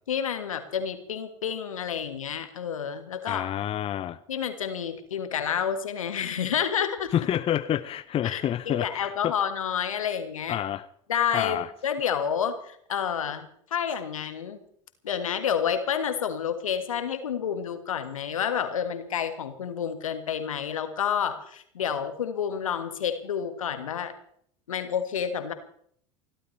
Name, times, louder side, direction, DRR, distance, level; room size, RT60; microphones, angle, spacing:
voice 1, 0.1-3.5 4.3-7.1 8.2-10.6 11.1-14.6 15.0-24.1 24.7-25.5, left 8 dB, 75° left, 9 dB, 1.8 m, -29 dB
voice 2, 3.3-4.2 7.1-9.3 10.5-10.9 11.3-11.7, left 11 dB, 35° left, 13 dB, 0.7 m, -28 dB
29.5 x 12.5 x 3.3 m, 0.65 s
figure-of-eight pair, 75°, 17 cm